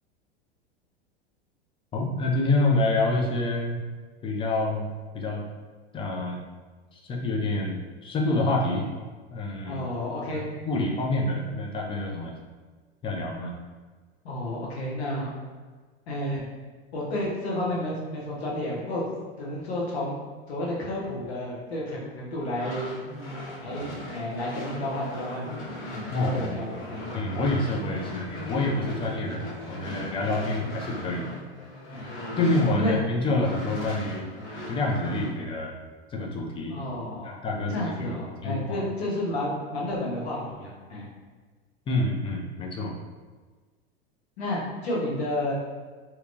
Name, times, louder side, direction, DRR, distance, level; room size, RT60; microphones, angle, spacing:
voice 1, 1.9-3.8 4.2-4.9 5.1-5.4 5.9-6.4 6.9-8.9 9.3-9.8 10.3-12.4 13.0-13.5 26.1-26.6 27.1-31.2 32.4-34.3 34.7-35.8 36.1-36.8 37.2-38.9 41.9-43.0, left 2 dB, 15° left, 0 dB, 0.4 m, -27 dB
voice 2, 9.6-10.4 10.7-10.9 14.2-15.3 16.1-16.4 16.9-19.0 19.4-20.1 20.5-22.9 23.6-25.5 25.9-27.2 31.9-32.4 32.8-32.9 36.7-37.4 37.7-41.0 44.4-45.5, left 1 dB, 75° left, -4 dB, 1.0 m, -31 dB
sound 1, 22.4-33.1 33.4-35.3, left 1 dB, 40° left, 0.9 m, -38 dB
2.7 x 2.2 x 2.6 m, 1.4 s
hypercardioid pair, 90°, 32 cm